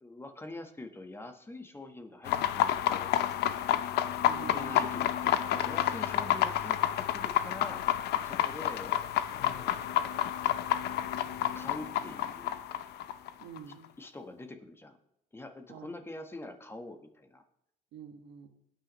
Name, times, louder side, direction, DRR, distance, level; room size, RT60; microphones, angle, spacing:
voice 1, 0.0-3.1 4.4-7.8 8.2-9.1 9.3-10.2 11.5-12.6 14.0-15.0 15.3-17.4, left 2 dB, 15° left, 6 dB, 1.3 m, -45 dB
sound 1, 2.3-13.7, left 11 dB, 75° left, 0.7 m, -29 dB
voice 2, 4.2-4.9 13.4-13.9 15.7-15.9 17.9-18.5, right 7 dB, 80° right, 5 dB, 1.6 m, -47 dB
21.5 x 9.0 x 3.1 m, 0.83 s
cardioid pair, 110°, 17 cm